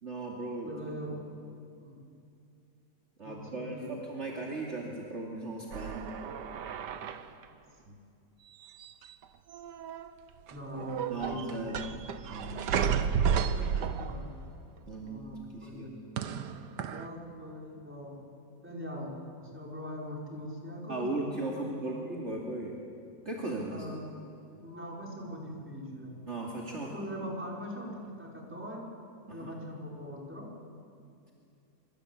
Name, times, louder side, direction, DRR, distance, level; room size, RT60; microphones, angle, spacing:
voice 1, 0.0-1.2 3.2-6.1 7.9-8.0 11.1-11.8 12.3-12.6 14.9-15.2 15.5-15.9 20.9-22.7 23.2-23.8 26.3-27.0 29.3-29.5, right 2 dB, 40° right, -2 dB, 3.0 m, -37 dB
voice 2, 0.7-1.2 1.8-2.0 3.2-3.9 7.1-7.5 10.5-11.6 13.5-14.3 15.0-16.0 16.9-18.2 18.6-22.1 23.7-24.1 24.6-26.1 26.8-28.9 29.3-30.5, equal, 5° right, -2 dB, 5.4 m, -42 dB
sound 1, 5.7-7.4 8.6-9.2 9.5-10.1 10.5-14.4 16.2-17.1, right 7 dB, 85° right, 1.7 m, -32 dB
26.5 x 25.5 x 8.5 m, 2.6 s
omnidirectional pair, 1.8 m